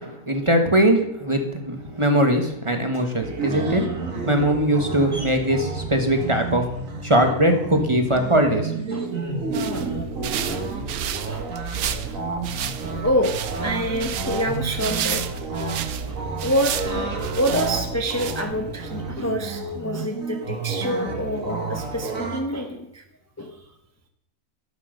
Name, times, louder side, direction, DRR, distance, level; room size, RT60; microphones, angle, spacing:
voice 1, 0.0-3.8 4.3-6.6 7.0-8.7, right 1 dB, 20° right, 4 dB, 1.3 m, -21 dB
sound 1, 3.2-22.4, right 3 dB, 55° right, 2.1 m, -30 dB
sound 2, 9.3-18.8, right 9 dB, 70° right, 1.2 m, -32 dB
voice 2, 9.7-10.0 10.5-10.8 11.3-11.5 12.0-12.2 12.8-15.2 16.1-23.0 23.4-23.6, equal, 15° left, 4 dB, 0.7 m, -27 dB
13.0 x 7.2 x 6.5 m, 0.80 s
omnidirectional pair, 1.7 m